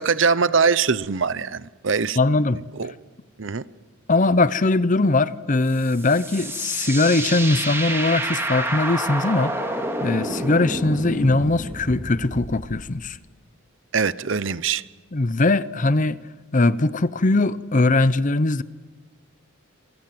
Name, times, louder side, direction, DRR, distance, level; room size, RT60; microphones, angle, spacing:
voice 1, 0.0-2.2 2.8-2.9 3.4-3.6 13.9-14.8, right 5 dB, 60° right, 0.8 m, -22 dB
voice 2, 2.2-2.6 4.1-9.5 10.0-13.2 15.1-16.2 16.5-18.6, left 2 dB, 35° left, 0.7 m, -20 dB
sound 1, 5.7-12.8, right 1 dB, 10° right, 3.0 m, -29 dB
28.5 x 24.0 x 7.8 m
head